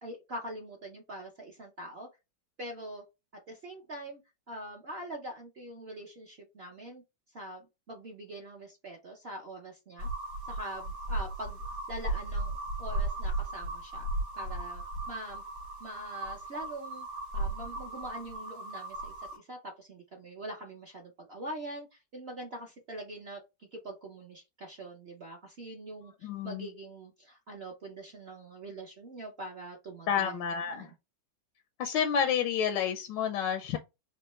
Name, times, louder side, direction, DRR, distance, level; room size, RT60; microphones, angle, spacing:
voice 1, 0.0-2.1 2.6-3.0 3.5-4.2 4.5-7.0 7.3-10.1 10.5-11.6 11.9-14.1 14.3-15.4 15.8-17.1 17.3-30.4 30.7-30.9, right 1 dB, 50° right, 0.8 m, -43 dB
sound 1, 10.0-19.4, right 2 dB, 70° right, 2.6 m, -36 dB
voice 2, 26.2-26.7 30.1-30.9 31.8-33.8, left 8 dB, 85° left, 1.3 m, -29 dB
5.3 x 2.1 x 3.0 m
omnidirectional pair, 1.9 m